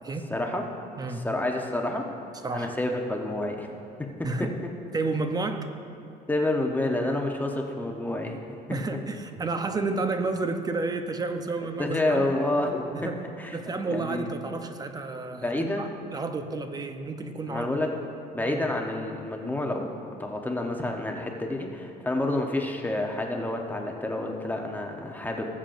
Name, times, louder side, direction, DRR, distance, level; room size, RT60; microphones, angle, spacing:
voice 1, 0.3-0.8 1.1-2.1 2.5-3.7 4.0-4.3 6.3-8.8 11.8-13.1 13.4-13.6 13.8-14.3 15.4-15.9 17.5-18.0 18.3-19.9 20.2-25.5, left 1 dB, 10° left, 1 dB, 0.9 m, -29 dB
voice 2, 2.4-2.7 4.2-4.6 4.9-5.7 8.7-12.3 12.9-13.2 13.5-17.8 18.5-18.7, right 3 dB, 25° right, 7 dB, 0.7 m, -31 dB
19.0 x 7.3 x 2.6 m, 2.6 s
cardioid pair, 110°, 17 cm